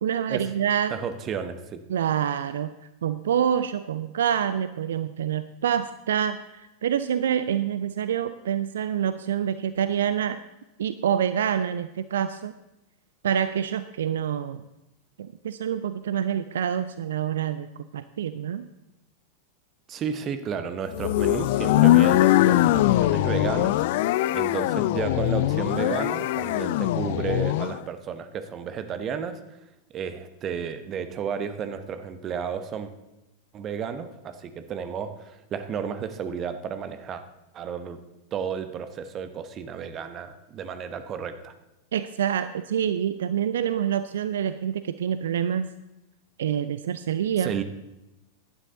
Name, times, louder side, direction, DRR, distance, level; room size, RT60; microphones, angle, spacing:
voice 1, 0.0-1.0 1.9-2.7 3.0-10.4 10.8-12.5 13.2-14.7 15.2-18.7 41.9-45.7 46.4-47.5, right 9 dB, 60° right, 13 dB, 0.4 m, -26 dB
voice 2, 0.9-1.8 19.9-23.8 24.3-29.4 29.9-32.9 33.5-37.2 37.5-38.0 38.3-41.5 47.4-47.6, right 7 dB, 30° right, 10 dB, 1.1 m, -32 dB
Alien Siren, 20.9-27.8, left 15 dB, 50° left, 0.4 m, -22 dB
16.0 x 11.5 x 4.0 m, 0.96 s
figure-of-eight pair, 90°, 0 cm